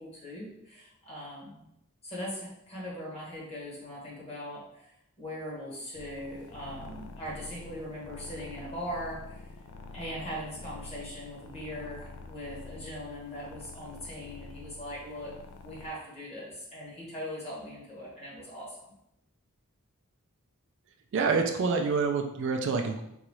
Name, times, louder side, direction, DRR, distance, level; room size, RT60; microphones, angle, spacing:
voice 1, 0.0-1.6 2.0-9.4 9.9-15.3 15.6-18.8, equal, 30° left, -6 dB, 1.3 m, -40 dB
sound 1, 5.9-15.9, left 3 dB, 80° left, 0.4 m, -47 dB
voice 2, 21.1-23.0, right 4 dB, 55° right, 4 dB, 0.4 m, -27 dB
3.9 x 2.3 x 3.1 m, 0.80 s
head